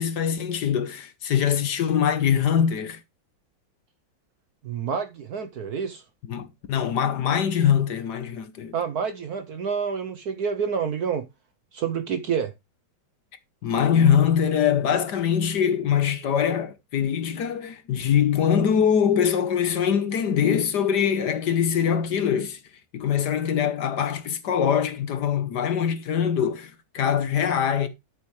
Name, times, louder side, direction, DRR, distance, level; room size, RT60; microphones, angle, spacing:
voice 1, 0.0-3.0 6.3-8.7 13.6-22.6 22.9-27.9, left 8 dB, 60° left, 1.3 m, -23 dB
voice 2, 4.6-6.0 8.7-11.3 11.7-12.5, right 6 dB, 65° right, 1.0 m, -28 dB
12.0 x 6.9 x 3.2 m
omnidirectional pair, 2.3 m